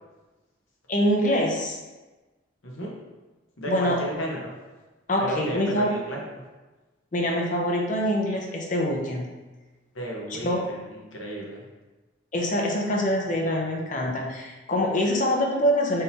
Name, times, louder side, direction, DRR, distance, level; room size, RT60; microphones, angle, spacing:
voice 1, 0.9-1.8 3.7-4.0 5.1-5.9 7.1-9.3 10.4-10.6 12.3-16.0, equal, 40° left, 0 dB, 0.6 m, -24 dB
voice 2, 3.6-4.5 5.2-6.4 9.9-11.6, right 1 dB, 85° left, -2 dB, 1.0 m, -33 dB
4.2 x 3.7 x 2.7 m, 1.2 s
head